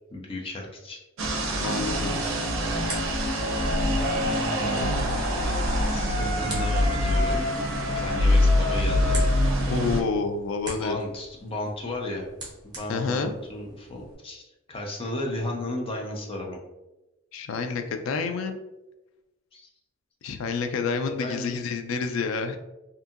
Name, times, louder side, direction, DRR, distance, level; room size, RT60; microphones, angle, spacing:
voice 1, 0.1-1.0 4.2-7.4 8.0-9.2 10.7-12.3 12.6-14.4 14.7-16.6 19.5-19.7 21.1-21.6, left 1 dB, 30° left, 0 dB, 0.5 m, -35 dB
sound 1, 1.2-10.0, equal, 70° right, 0.5 m, -25 dB
voice 2, 1.6-2.2 9.7-11.0 12.9-13.3 17.3-18.6 20.2-22.6, left 4 dB, 85° left, 6 dB, 0.3 m, -28 dB
sound 2, 2.0-14.2, right 2 dB, 20° right, 0.8 m, -44 dB
sound 3, 3.9-10.0, left 2 dB, 50° left, 1.2 m, -32 dB
2.7 x 2.6 x 2.4 m, 1.0 s
head